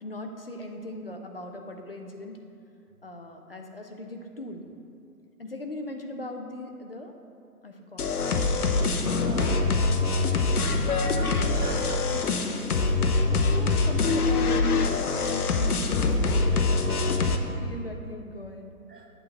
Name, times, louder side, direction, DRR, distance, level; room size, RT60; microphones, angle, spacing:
voice 1, 0.0-2.4 3.0-4.7 5.4-7.2 7.6-8.1 13.5-14.7 15.1-17.2 17.5-18.7, left 1 dB, 40° left, 3 dB, 0.5 m, -39 dB
sound 1, 8.0-17.4, left 3 dB, 70° left, 0.8 m, -24 dB
voice 2, 9.2-9.6 11.1-12.7 18.9-19.1, right 3 dB, 75° right, 1 dB, 1.4 m, -40 dB
8.5 x 3.4 x 6.6 m, 2.6 s
hypercardioid pair, 165°, 47 cm